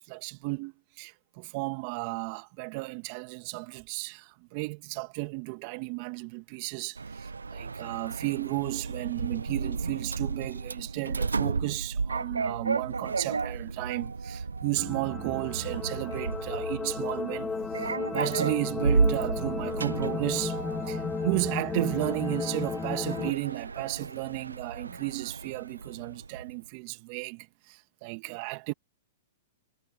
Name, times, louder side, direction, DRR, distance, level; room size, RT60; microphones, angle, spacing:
voice 1, 0.0-28.7, right 27 dB, 45° right, 2.3 m, -34 dB
Sliding door, 7.0-26.6, right 4 dB, 90° right, 0.4 m, -33 dB
sound 1, 14.8-23.3, left 4 dB, 15° left, 0.9 m, -34 dB
hypercardioid pair, 115°, 0 cm